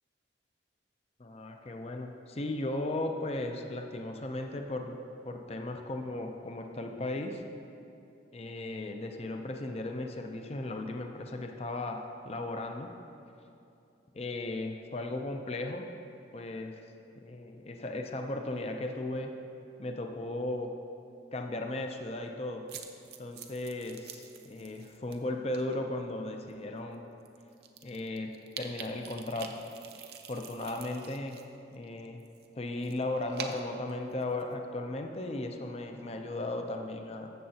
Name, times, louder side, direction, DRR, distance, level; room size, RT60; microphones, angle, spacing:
voice 1, 1.2-5.0 5.2-7.4 8.3-12.9 14.1-15.9 16.3-16.7 17.2-19.3 19.8-20.7 21.3-22.6 23.2-27.0 27.8-28.3 28.6-29.6 30.3-31.4 31.7-32.2 32.6-37.3, left 2 dB, 35° left, 4 dB, 0.5 m, -36 dB
sound 1, 22.7-25.2 25.5-25.8 26.5-26.6 26.9-27.0 27.3-31.4 31.7-34.5, right 7 dB, 55° right, 0.6 m, -46 dB
13.5 x 7.6 x 2.8 m, 2.7 s
head